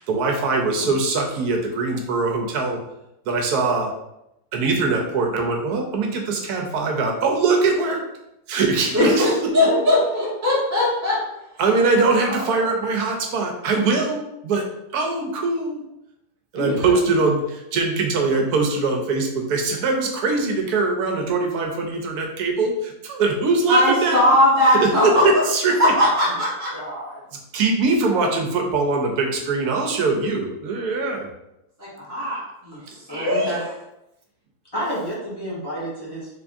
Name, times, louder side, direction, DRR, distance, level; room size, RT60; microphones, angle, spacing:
voice 1, 0.1-2.8 3.3-3.9 4.5-8.0 8.5-9.5 11.6-14.7 14.9-15.8 16.5-24.4 24.6-25.8 27.5-31.3, right 3 dB, 75° right, 1 dB, 1.1 m, -22 dB
voice 2, 8.9-11.2 12.3-12.5 23.7-25.3 25.8-26.7 31.8-32.8 33.1-33.7, left 1 dB, 15° right, -8 dB, 0.7 m, -19 dB
voice 3, 9.6-10.6 16.5-17.1 26.7-27.2 32.7-32.8 33.1-33.6 34.7-36.3, equal, 15° left, -7 dB, 1.2 m, -29 dB
3.4 x 3.4 x 2.5 m, 0.86 s
omnidirectional pair, 1.7 m